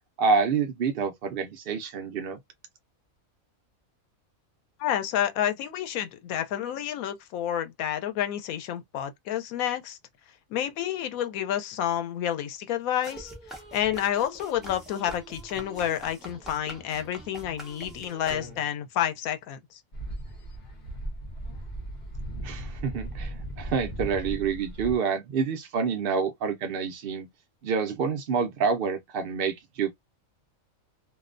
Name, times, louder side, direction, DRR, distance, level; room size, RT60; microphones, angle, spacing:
voice 1, 0.2-2.4 22.4-27.3 27.6-29.9, right 5 dB, 65° right, 0.5 m, -27 dB
voice 2, 4.8-10.0 10.5-13.3 13.7-19.8, left 10 dB, 90° left, 1.0 m, -29 dB
sound 1, 13.0-18.8, right 1 dB, ahead, 0.3 m, -44 dB
sound 2, 19.9-25.0, right 1 dB, 45° left, 0.6 m, -37 dB
2.6 x 2.1 x 2.4 m
omnidirectional pair, 1.4 m